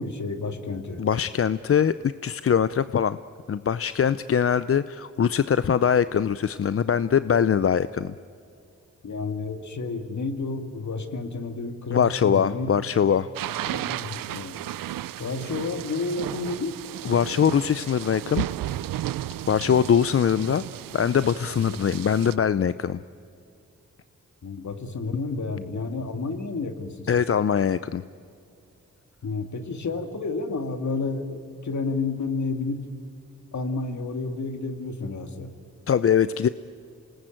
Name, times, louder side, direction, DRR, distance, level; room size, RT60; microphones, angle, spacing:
voice 1, 0.0-1.0 9.0-12.7 13.7-14.5 15.2-16.7 21.6-21.8 24.4-27.2 29.2-32.8 33.5-35.5, left 3 dB, 60° left, 7 dB, 2.3 m, -31 dB
voice 2, 1.0-1.9 2.2-3.2 3.5-8.1 11.9-13.3 13.6-13.8 17.0-18.5 19.5-20.6 20.9-23.0 27.1-28.0 35.9-36.5, left 8 dB, 45° left, 15 dB, 0.6 m, -22 dB
sound 1, 13.3-22.3, right 13 dB, 85° right, 0.5 m, -34 dB
27.0 x 19.5 x 9.0 m, 2.6 s
cardioid pair, 60°, 33 cm